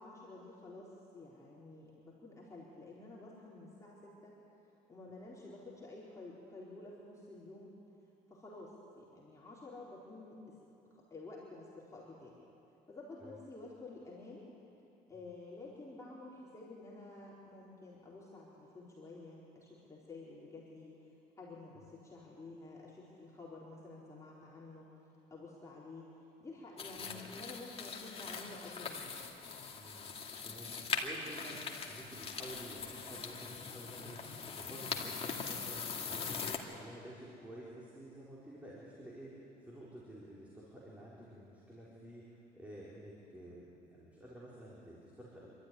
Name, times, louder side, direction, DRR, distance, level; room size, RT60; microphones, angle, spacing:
voice 1, 0.0-4.4 4.9-7.7 8.3-10.6 10.9-12.4 12.9-14.5 15.1-21.0 21.4-24.9 25.3-26.1 26.4-29.2, left 2 dB, 20° left, -6 dB, 4.3 m, -51 dB
sound 1, 26.8-36.6, left 5 dB, 35° left, 2.3 m, -41 dB
voice 2, 27.0-27.3 29.7-30.7 31.0-45.5, right 1 dB, 10° right, -7 dB, 4.7 m, -51 dB
27.0 x 13.5 x 10.0 m, 2.8 s
cardioid pair, 110°, 17 cm